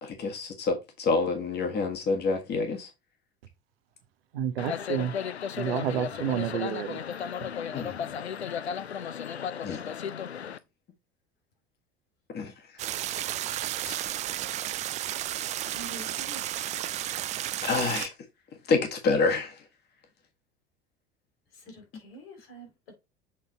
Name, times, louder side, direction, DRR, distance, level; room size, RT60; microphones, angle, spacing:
voice 1, 0.0-2.9 6.9-7.0 7.7-8.1 9.6-9.8 12.3-12.5 13.8-14.0 17.6-18.1 18.7-19.5, left 4 dB, 30° left, 1.7 m, -27 dB
voice 2, 4.3-5.1 5.6-7.0, right 9 dB, 65° right, 0.9 m, -29 dB
sound 1, 4.6-10.6, left 8 dB, 80° left, 0.6 m, -34 dB
sound 2, 12.8-18.1, right 12 dB, 25° right, 0.3 m, -33 dB
voice 3, 15.6-16.4 21.6-22.7, right 1 dB, 65° left, 3.8 m, -45 dB
7.3 x 4.0 x 4.0 m
figure-of-eight pair, 70°, 32 cm